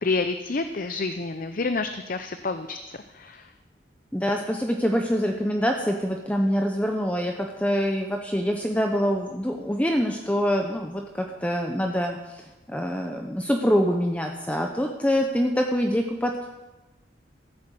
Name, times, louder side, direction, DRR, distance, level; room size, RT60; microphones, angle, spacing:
voice 1, 0.0-3.5, left 3 dB, 50° left, 9 dB, 0.6 m, -29 dB
voice 2, 4.1-16.5, equal, 10° left, 2 dB, 0.9 m, -25 dB
15.0 x 8.6 x 7.7 m, 1.1 s
head